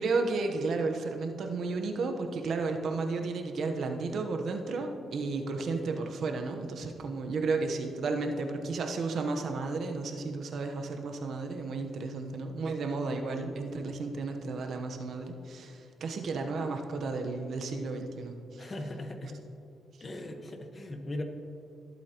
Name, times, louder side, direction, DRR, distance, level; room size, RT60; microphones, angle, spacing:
voice 1, 0.0-18.7 19.2-19.3, right 3 dB, 65° right, 4 dB, 1.0 m, -33 dB
voice 2, 18.6-19.4 20.0-21.2, left 1 dB, 35° left, 5 dB, 1.3 m, -39 dB
18.5 x 8.4 x 3.0 m, 2.7 s
cardioid pair, 90°, 0 cm